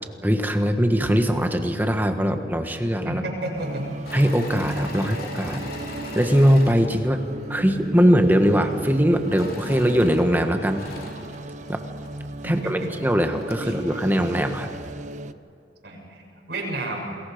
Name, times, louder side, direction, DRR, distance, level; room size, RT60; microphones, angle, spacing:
voice 1, 0.2-3.2 4.1-5.7 6.1-7.2 7.5-10.9 11.7-11.8 12.5-14.8, equal, 10° right, 6 dB, 1.4 m, -21 dB
voice 2, 3.0-4.0 5.0-5.2 12.4-12.9 13.6-13.8 15.8-17.2, right 1 dB, 65° right, -1 dB, 7.2 m, -31 dB
sound 1, 3.6-15.3, right 1 dB, 40° right, 0.7 m, -35 dB
Engine / Mechanisms, 4.0-7.8 9.2-12.2 12.8-12.9 13.2-13.8, left 2 dB, 50° left, 3.5 m, -39 dB
29.0 x 21.5 x 5.2 m, 2.6 s
head